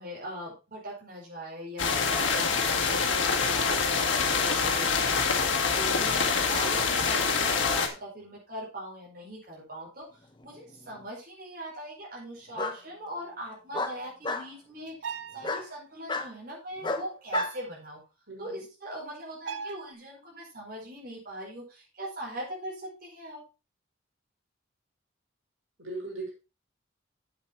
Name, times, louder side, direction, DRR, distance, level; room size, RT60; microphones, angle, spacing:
voice 1, 0.0-10.0 10.4-18.0 18.4-23.4, equal, 45° right, -4 dB, 4.9 m, -40 dB
sound 1, 1.8-7.9, left 5 dB, 70° left, 1.9 m, -25 dB
Bark, 10.4-11.0 12.6-12.8 13.7-14.5 15.4-15.7 16.1-16.3 16.8-17.5, left 3 dB, 25° left, 1.0 m, -32 dB
sound 2, 14.9-15.6 17.3-17.7 19.5-19.9, right 4 dB, 70° right, 0.8 m, -35 dB
voice 2, 18.3-18.6 25.8-26.3, right 2 dB, 85° right, -1 dB, 5.9 m, -39 dB
8.4 x 8.2 x 4.5 m, 0.30 s
head